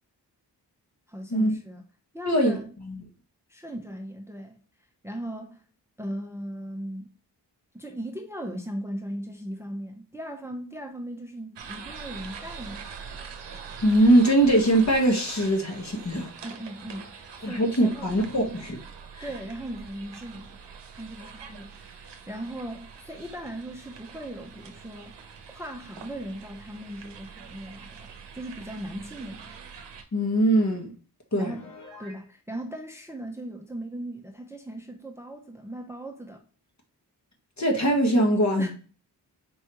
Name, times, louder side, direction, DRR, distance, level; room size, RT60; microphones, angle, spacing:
voice 1, 1.1-1.8 2.1-2.7 3.5-4.6 5.0-5.6 6.0-7.1 7.7-12.9 16.4-17.1 17.4-18.1 19.2-20.6 20.9-25.2 25.5-29.5 31.3-31.6 32.0-36.5 38.6-38.7, right 1 dB, 5° right, 0.8 m, -38 dB
voice 2, 2.3-2.6 2.9-3.0 13.8-16.3 17.4-18.8 19.1-19.3 30.1-30.9 31.3-31.5 37.6-38.7, right 1 dB, 40° left, 1.3 m, -22 dB
sound 1, 11.5-30.0, right 6 dB, 80° right, 0.8 m, -44 dB
Piano, 31.4-32.3, left 2 dB, 60° left, 1.9 m, -46 dB
4.6 x 3.2 x 3.0 m
cardioid pair, 55°, 42 cm